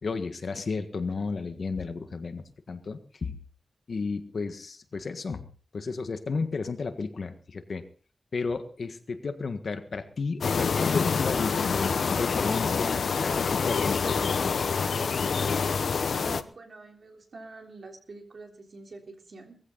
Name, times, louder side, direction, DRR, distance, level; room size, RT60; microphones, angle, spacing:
voice 1, 0.0-3.3 3.9-5.4 5.7-7.8 8.3-14.5, left 4 dB, 60° left, 8 dB, 1.6 m, -33 dB
sound 1, 10.4-16.4, left 5 dB, 85° left, 0.9 m, -26 dB
voice 2, 16.1-19.6, right 3 dB, 60° right, 2 dB, 3.5 m, -45 dB
20.0 x 15.0 x 4.0 m, 0.41 s
wide cardioid pair, 140°, 0 cm